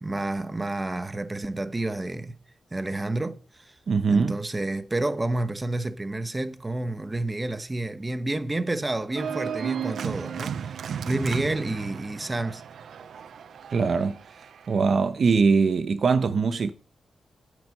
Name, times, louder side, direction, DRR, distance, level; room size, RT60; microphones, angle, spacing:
voice 1, 0.0-2.4 2.7-3.7 4.1-12.6, right 2 dB, 20° right, 1.1 m, -30 dB
voice 2, 3.9-4.4 13.7-14.2 14.7-16.7, right 5 dB, 60° right, 0.8 m, -22 dB
Organ, 9.2-14.8, right 8 dB, 80° right, 0.5 m, -34 dB
9.4 x 8.8 x 6.5 m
cardioid pair, 95°, 0 cm